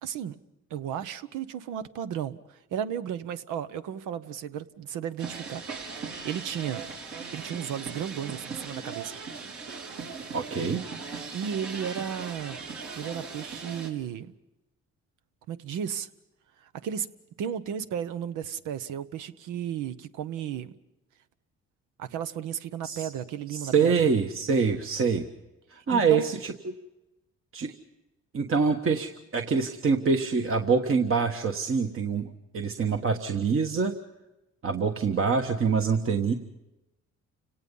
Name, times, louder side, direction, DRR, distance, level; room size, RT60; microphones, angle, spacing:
voice 1, 0.0-0.4 0.7-5.6 6.2-6.8 7.3-9.2 11.3-12.6 13.0-14.3 15.5-16.1 16.8-17.1 17.4-20.7 22.0-23.9 25.9-26.3 27.6-27.7, right 9 dB, 90° right, 12 dB, 1.0 m, -34 dB
sound 1, 5.2-13.9, right 5 dB, 70° right, 4.3 m, -39 dB
voice 2, 10.3-10.8 22.8-23.1 23.5-25.3 25.7-26.5 27.5-27.7 28.3-33.9 34.6-36.3, right 5 dB, 45° right, 4 dB, 1.3 m, -25 dB
29.5 x 18.0 x 5.4 m, 0.96 s
cardioid pair, 90°, 30 cm